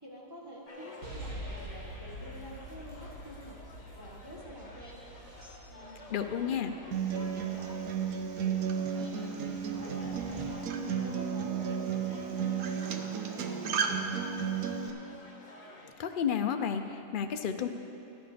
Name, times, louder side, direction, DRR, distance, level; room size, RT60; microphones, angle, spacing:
voice 1, 0.0-3.6 4.0-5.0 5.7-6.8 7.1-8.1 8.4-10.8 11.0-14.7, equal, 15° right, -5 dB, 1.5 m, -49 dB
sound 1, 0.6-15.9, left 2 dB, 30° left, 1.1 m, -51 dB
sound 2, 1.0-10.4, equal, 65° right, 2.3 m, -47 dB
voice 2, 6.1-6.7 16.0-17.7, left 8 dB, 60° left, 7 dB, 0.5 m, -31 dB
Acoustic guitar, 6.9-14.9, right 7 dB, 80° right, 1.2 m, -33 dB
12.5 x 9.1 x 5.0 m, 2.8 s
omnidirectional pair, 1.5 m